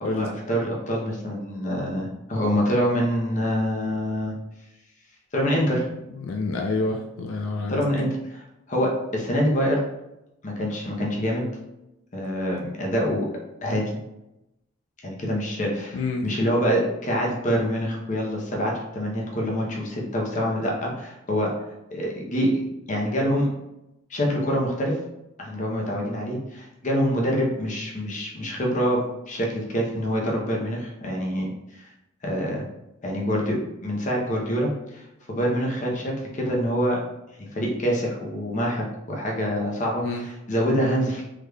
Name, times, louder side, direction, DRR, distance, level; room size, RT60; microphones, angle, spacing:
voice 1, 0.0-4.3 5.3-5.9 7.7-9.8 10.4-11.5 12.1-13.3 13.6-14.0 15.0-21.5 21.9-22.5 22.9-23.5 24.1-25.0 25.4-31.9 32.2-32.6 33.0-37.0 37.4-41.2, equal, 35° left, -1 dB, 0.7 m, -26 dB
voice 2, 6.2-7.8 15.9-16.2 40.0-40.3, left 3 dB, 75° left, 2 dB, 0.3 m, -27 dB
3.5 x 3.2 x 2.2 m, 0.91 s
head